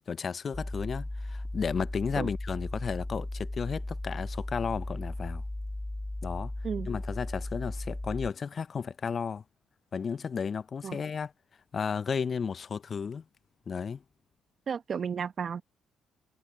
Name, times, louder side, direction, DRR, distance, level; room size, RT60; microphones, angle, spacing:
voice 1, 0.1-5.4 6.2-6.5 6.9-9.4 9.9-11.3 11.7-13.2 13.7-14.0, left 6 dB, 45° left, 0.8 m, -33 dB
sound 1, 0.5-8.3, left 1 dB, 15° left, 3.0 m, -36 dB
voice 2, 14.7-15.6, right 7 dB, 50° right, 1.6 m, -33 dB
hypercardioid pair, 50°, 0 cm